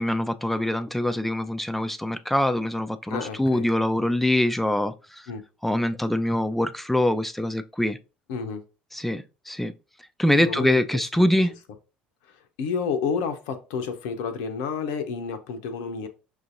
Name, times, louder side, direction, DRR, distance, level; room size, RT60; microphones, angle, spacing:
voice 1, 0.0-5.3 5.6-8.0 8.9-9.7 10.2-11.5, left 1 dB, 5° left, 0.4 m, -24 dB
voice 2, 3.1-3.7 5.3-5.5 8.3-8.6 10.4-10.8 11.1-11.3 12.2-12.3 12.6-16.1, left 5 dB, 60° left, 0.5 m, -30 dB
6.1 x 2.6 x 2.6 m
figure-of-eight pair, 60°, 5 cm